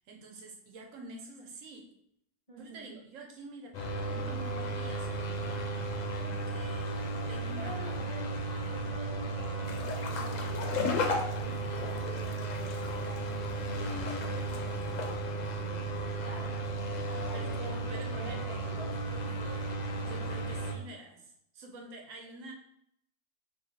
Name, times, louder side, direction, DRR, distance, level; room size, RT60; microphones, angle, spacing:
voice 1, 0.1-1.9 2.6-5.7 6.2-8.2 17.3-18.4 20.0-22.5, right 2 dB, 85° right, 2 dB, 1.1 m, -48 dB
voice 2, 2.5-2.9 7.6-10.9 11.4-16.7 17.1-19.7, right 1 dB, 30° left, -5 dB, 0.9 m, -48 dB
sound 1, 3.7-20.7, right 2 dB, 65° left, 0.4 m, -35 dB
sound 2, 9.7-15.1, left 4 dB, 85° left, 1.0 m, -36 dB
4.6 x 2.7 x 2.8 m, 0.75 s
omnidirectional pair, 1.3 m